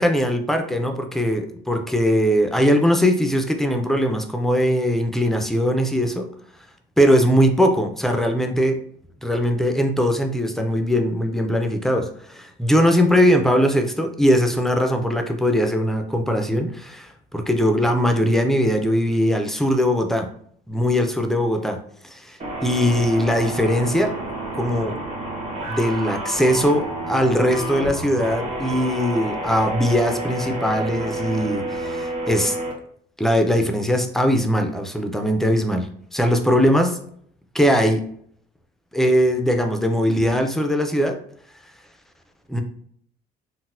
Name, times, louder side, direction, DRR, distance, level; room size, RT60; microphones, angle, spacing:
voice 1, 0.0-6.3 7.0-8.8 9.2-20.3 20.7-24.1 24.5-25.0 25.6-32.6 33.2-37.0 37.5-38.0 38.9-41.2 42.5-42.6, equal, ahead, 5 dB, 0.4 m, -20 dB
sound 1, 22.4-32.7, right 1 dB, 40° right, 1.1 m, -30 dB
3.8 x 2.1 x 2.5 m, 0.64 s
cardioid pair, 110°, 17 cm